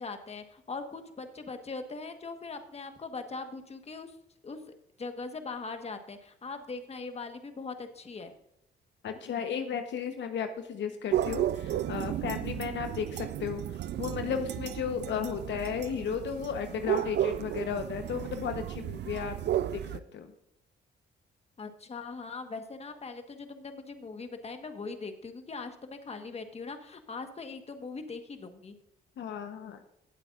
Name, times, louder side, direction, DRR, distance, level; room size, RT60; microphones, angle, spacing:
voice 1, 0.0-4.2 4.4-8.3 21.6-28.7, left 4 dB, 30° left, 7 dB, 1.3 m, -41 dB
voice 2, 9.0-13.6 14.0-19.4 19.7-20.3 29.2-29.8, left 7 dB, 65° left, 7 dB, 1.0 m, -34 dB
sound 1, 11.1-20.0, right 11 dB, 60° right, 0.4 m, -33 dB
18.0 x 7.9 x 2.5 m, 0.80 s
cardioid pair, 90°, 20 cm